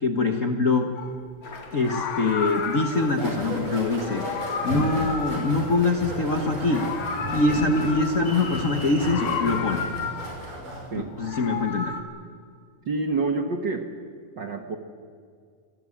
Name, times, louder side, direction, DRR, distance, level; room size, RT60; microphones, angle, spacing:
voice 1, 0.0-0.9 1.7-4.2 4.6-6.8 7.3-9.9 10.9-11.9, left 3 dB, 85° left, 5 dB, 0.7 m, -24 dB
Meow, 1.0-1.2 1.8-3.2 3.9-6.2 6.5-8.4 8.9-10.5 11.1-12.0, left 5 dB, 60° left, 2.8 m, -32 dB
Applause, 1.4-9.4, left 2 dB, 30° left, 2.3 m, -42 dB
sound 1, 3.1-10.9, right 1 dB, 75° right, 7.4 m, -34 dB
voice 2, 12.8-13.9 14.4-14.8, right 3 dB, 55° right, 5 dB, 1.3 m, -27 dB
26.5 x 19.0 x 8.6 m, 2.1 s
omnidirectional pair, 3.8 m